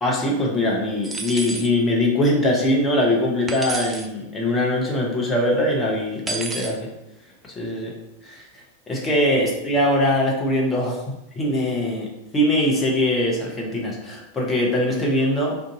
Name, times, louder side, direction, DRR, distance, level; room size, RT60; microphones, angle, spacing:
voice 1, 0.0-6.9 7.6-7.9 8.2-8.4 8.9-11.0 11.3-12.1 12.3-15.5, left 1 dB, 15° left, -2 dB, 0.8 m, -22 dB
sound 1, 1.0-1.7 3.5-4.1 6.3-6.8, right 3 dB, 15° right, 0.4 m, -30 dB
2.6 x 2.4 x 3.8 m, 0.89 s
figure-of-eight pair, 90°, 0 cm